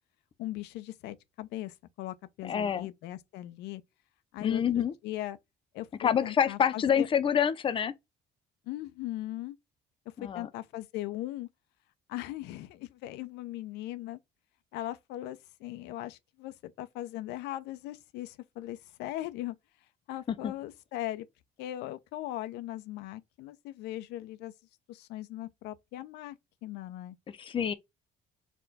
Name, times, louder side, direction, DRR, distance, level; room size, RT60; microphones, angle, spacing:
voice 1, 0.4-3.8 4.3-5.4 5.7-7.1 8.7-9.6 10.2-11.5 12.1-14.2 14.7-19.6 20.1-21.3 21.6-24.5 24.9-26.4 26.6-27.2, left 15 dB, 90° left, 0.5 m, -39 dB
voice 2, 2.4-2.9 4.4-4.9 6.0-7.9 10.2-10.5 20.3-20.5 27.3-27.7, left 8 dB, 30° left, 0.5 m, -27 dB
4.3 x 2.2 x 3.9 m
cardioid pair, 110°, 17 cm